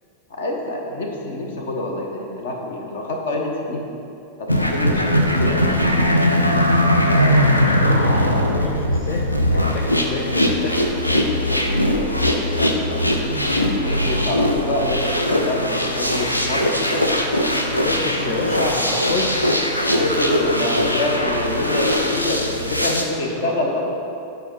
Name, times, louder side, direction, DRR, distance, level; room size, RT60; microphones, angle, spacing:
voice 1, 0.4-3.8 4.4-5.7 11.1-11.6 11.9-13.4 13.8-17.1 19.7-23.8, left 1 dB, 55° left, 0 dB, 1.2 m, -26 dB
sound 1, 4.5-23.0, equal, 85° left, 0.6 m, -20 dB
voice 2, 7.3-10.8 11.1-11.3 15.9-16.2 17.7-19.5 23.3-23.7, left 3 dB, 35° left, 0 dB, 0.7 m, -29 dB
8.9 x 5.0 x 4.6 m, 2.7 s
figure-of-eight pair, 90°, 0 cm